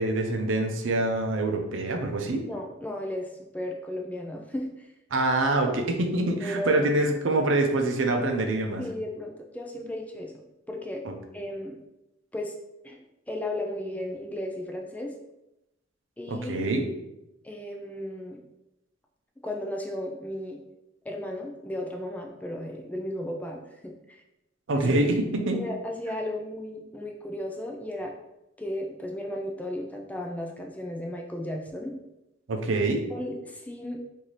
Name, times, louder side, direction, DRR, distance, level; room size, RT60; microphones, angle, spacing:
voice 1, 0.0-2.4 5.1-8.8 11.0-11.1 16.3-16.9 24.7-25.6 32.5-33.0, right 2 dB, 80° right, 3 dB, 0.6 m, -25 dB
voice 2, 2.4-3.3 3.5-4.9 6.4-6.9 8.8-10.3 10.7-11.0 11.3-11.8 12.3-12.5 12.8-15.1 16.2-16.7 17.4-18.4 19.4-20.6 21.0-24.2 24.8-25.0 25.6-28.1 28.6-31.9 33.1-34.0, left 1 dB, 10° left, 1 dB, 0.3 m, -35 dB
3.1 x 2.7 x 4.0 m, 0.92 s
head